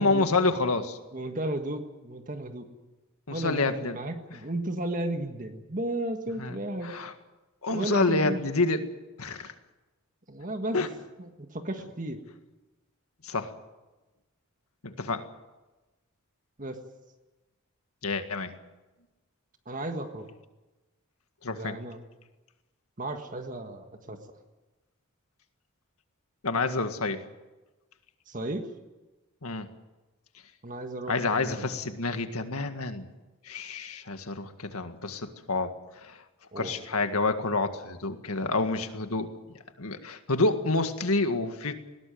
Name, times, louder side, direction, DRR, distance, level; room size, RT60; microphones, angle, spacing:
voice 1, 0.0-1.0 3.3-4.0 6.4-6.6 6.8-7.1 7.6-8.8 9.2-9.5 10.7-10.9 13.2-13.5 14.8-15.2 18.0-18.5 21.4-21.8 26.4-27.2 29.4-29.7 31.1-33.1 33.4-36.2 36.6-39.3 39.8-41.7, left 3 dB, 80° left, 7 dB, 1.9 m, -28 dB
voice 2, 1.1-2.7 3.3-7.0 7.7-8.5 10.3-10.8 11.2-12.2 16.6-16.8 19.7-20.3 21.5-22.0 23.0-24.2 28.3-28.7 30.6-31.8 36.5-36.8, right 1 dB, 35° right, 6 dB, 1.7 m, -34 dB
20.5 x 18.0 x 9.3 m, 1.1 s
head